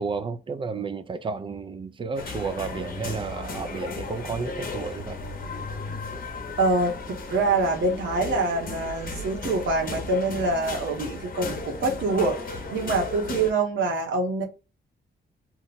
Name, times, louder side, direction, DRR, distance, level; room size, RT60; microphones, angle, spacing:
voice 1, 0.0-5.2, right 4 dB, 25° right, 0.3 m, -32 dB
sound 1, 2.1-13.5, left 3 dB, 45° left, 0.8 m, -35 dB
voice 2, 6.6-14.4, right 2 dB, 80° right, 1.0 m, -25 dB
2.9 x 2.1 x 3.9 m
wide cardioid pair, 165°, 19 cm